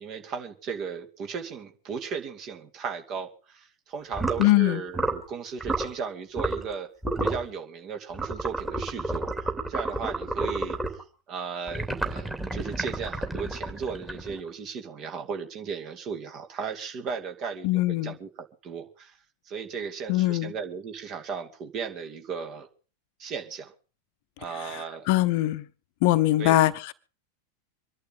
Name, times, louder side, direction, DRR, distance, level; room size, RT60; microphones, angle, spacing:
voice 1, 0.0-6.9 7.2-10.8 11.3-19.2 19.5-22.7 23.2-23.7 24.4-25.1 26.4-26.6, right 6 dB, 35° right, 2.5 m, -36 dB
sound 1, 4.1-4.5 4.9-5.3 5.6-5.9 6.4-6.7 7.0-7.5 8.1-11.0 11.7-14.5, right 2 dB, 10° right, 2.9 m, -30 dB
voice 2, 4.4-4.8 17.6-18.1 20.1-20.5 24.7-25.7 26.0-26.9, left 16 dB, 50° left, 0.9 m, -22 dB
26.0 x 11.5 x 3.8 m
figure-of-eight pair, 90°, 0 cm